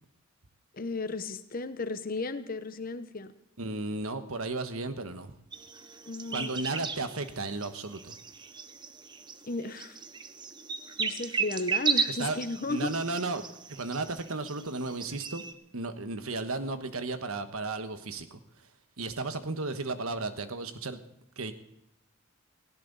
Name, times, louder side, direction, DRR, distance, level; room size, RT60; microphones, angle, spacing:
voice 1, 0.7-3.3 6.1-6.5 9.5-10.0 11.0-12.9, left 3 dB, 40° left, 11 dB, 0.9 m, -34 dB
voice 2, 3.6-5.3 6.3-8.2 12.1-12.4 12.7-13.4 13.7-15.4 15.7-18.4 19.0-21.0 21.4-21.5, right 3 dB, 80° right, 9 dB, 1.3 m, -34 dB
sound 1, 5.5-15.5, right 5 dB, 20° right, 0.8 m, -35 dB
18.5 x 16.5 x 4.1 m, 0.80 s
head